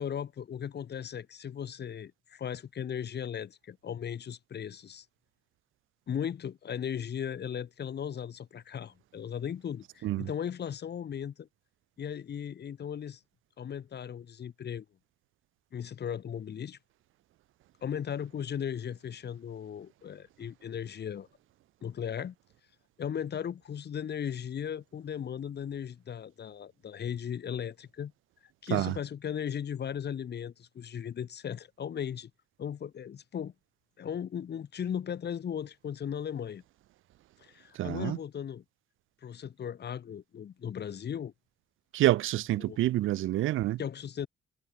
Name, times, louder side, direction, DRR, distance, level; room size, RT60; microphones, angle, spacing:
voice 1, 0.0-5.0 6.1-11.5 12.0-13.2 13.6-14.8 15.7-16.8 17.8-21.3 21.8-22.3 23.0-28.1 28.6-32.3 32.6-33.5 34.0-36.6 37.4-38.6 39.2-41.3 42.6-42.8 43.8-44.3, left 8 dB, 55° left, 6.5 m, -37 dB
voice 2, 37.8-38.2 41.9-43.8, right 15 dB, 85° right, 3.3 m, -27 dB
cardioid pair, 90°, 20 cm